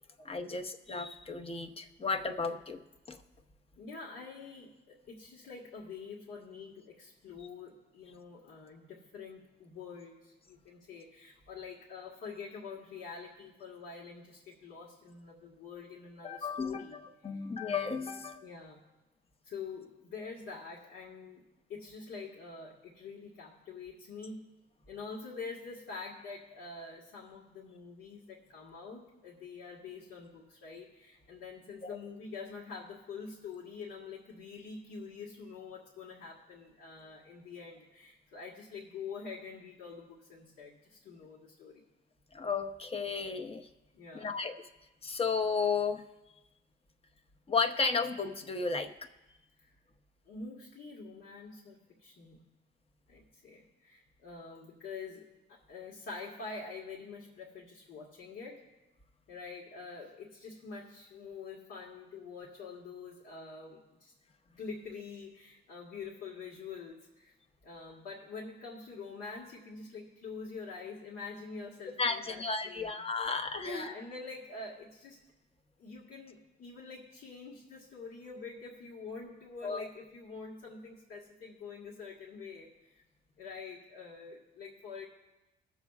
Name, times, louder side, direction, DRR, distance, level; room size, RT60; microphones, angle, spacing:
voice 1, 0.2-2.8 3.1-3.2 16.2-18.4 31.8-32.0 42.3-43.7 44.1-44.5 45.0-46.1 47.5-49.1 72.0-73.9 79.6-79.9, left 4 dB, 30° left, 6 dB, 0.8 m, -33 dB
voice 2, 3.7-17.0 17.3-17.4 18.4-18.8 19.4-24.4 24.9-41.8 43.9-44.3 49.6-49.7 50.2-52.4 53.1-58.7 59.3-64.1 64.6-67.3 67.6-73.0 73.6-75.2 75.8-83.0 83.4-85.1, left 4 dB, 75° left, -4 dB, 1.6 m, -46 dB
21.5 x 7.2 x 2.4 m, 1.0 s
cardioid pair, 90°, 20 cm